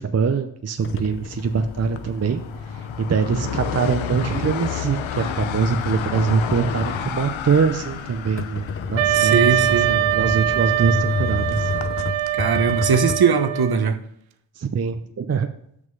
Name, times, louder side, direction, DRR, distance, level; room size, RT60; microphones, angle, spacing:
voice 1, 0.0-11.7 14.6-15.5, right 5 dB, 35° right, 8 dB, 0.6 m, -23 dB
sound 1, 0.8-12.3, left 9 dB, 75° left, 0.7 m, -32 dB
sound 2, 0.8-13.2, left 4 dB, 30° left, 0.6 m, -31 dB
Wind instrument woodwind instrument, 9.0-13.8, right 15 dB, 85° right, 0.6 m, -23 dB
voice 2, 9.1-9.9 12.3-14.0, right 5 dB, 55° right, 8 dB, 1.0 m, -20 dB
6.5 x 5.4 x 5.3 m, 0.69 s
cardioid pair, 50°, 46 cm